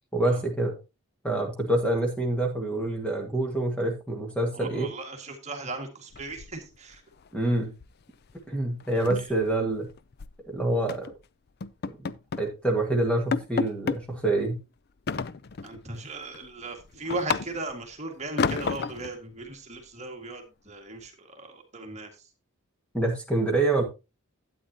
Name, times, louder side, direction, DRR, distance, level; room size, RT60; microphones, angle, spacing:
voice 1, 0.1-0.8 1.2-4.9 7.3-7.7 8.5-9.9 10.5-11.1 12.4-14.6 22.9-23.8, right 2 dB, 5° left, 2 dB, 1.7 m, -26 dB
voice 2, 4.6-7.0 15.6-22.1, right 2 dB, 30° right, 3 dB, 1.8 m, -37 dB
sound 1, 6.1-7.0 7.2-7.5 7.8-8.0 8.3-8.4 8.8-10.4 10.9-11.1 11.6-12.5 12.9-13.0 13.3-14.0 15.1-15.8 16.2-17.8 18.4-19.1, left 5 dB, 45° left, 0.4 m, -31 dB
12.5 x 8.9 x 2.8 m, 0.27 s
head